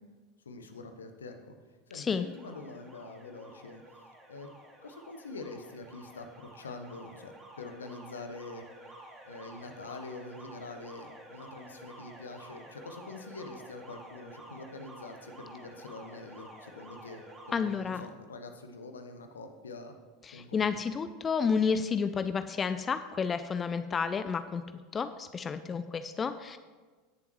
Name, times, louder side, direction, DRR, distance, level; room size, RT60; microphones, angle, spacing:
voice 1, 0.4-1.5 1.9-3.8 4.3-4.5 4.8-20.0 20.3-20.8, left 3 dB, 75° left, 6 dB, 0.9 m, -45 dB
voice 2, 1.9-2.3 17.5-18.0 20.2-24.6 24.9-26.6, left 6 dB, 25° left, 11 dB, 0.4 m, -31 dB
Alarm, 2.2-17.8, right 1 dB, 30° right, 2.5 m, -51 dB
17.5 x 7.0 x 3.1 m, 1.4 s
figure-of-eight pair, 80°, 0 cm